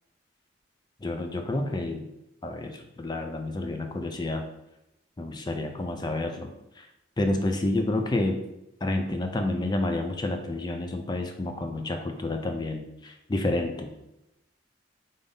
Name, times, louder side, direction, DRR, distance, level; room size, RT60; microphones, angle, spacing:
voice 1, 1.0-2.1 2.4-4.5 5.2-6.5 6.8-6.9 7.2-8.4 8.8-13.9, left 2 dB, 20° left, 4 dB, 0.4 m, -29 dB
3.9 x 3.6 x 3.7 m, 0.86 s
head